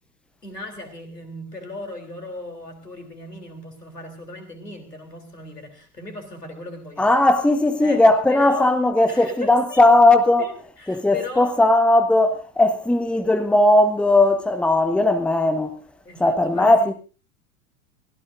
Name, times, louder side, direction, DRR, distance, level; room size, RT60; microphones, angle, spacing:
voice 1, 0.4-7.1 7.8-8.0 8.3-8.8 9.0-9.8 10.4-11.6 16.0-16.9, left 1 dB, 85° left, 3.5 m, -37 dB
voice 2, 7.0-10.5 10.9-15.8 16.2-16.9, left 2 dB, ahead, 1.2 m, -17 dB
23.5 x 17.0 x 2.6 m
figure-of-eight pair, 85°, 46 cm